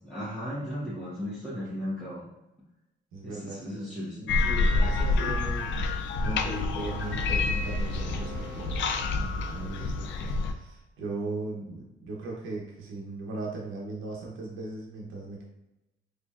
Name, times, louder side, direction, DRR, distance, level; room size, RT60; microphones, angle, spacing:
voice 1, 0.0-2.2 3.2-4.3, equal, 5° left, -9 dB, 1.2 m, -35 dB
voice 2, 3.1-8.8 9.1-15.4, right 3 dB, 90° right, -2 dB, 0.9 m, -38 dB
sound 1, 4.3-10.5, left 3 dB, 70° left, 0.4 m, -28 dB
sound 2, 6.8-9.8, right 3 dB, 55° right, 0.6 m, -43 dB
3.9 x 3.1 x 2.4 m, 0.95 s
cardioid pair, 90°, 20 cm